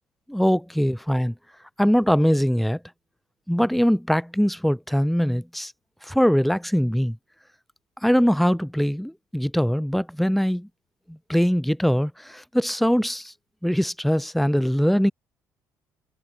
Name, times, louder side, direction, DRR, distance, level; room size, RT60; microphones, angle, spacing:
voice 1, 0.3-1.3 1.8-2.8 3.5-5.7 6.0-7.2 8.0-10.7 11.1-13.3 13.6-15.1, equal, ahead, 3.0 m, -22 dB
hypercardioid pair, 50°, 8 cm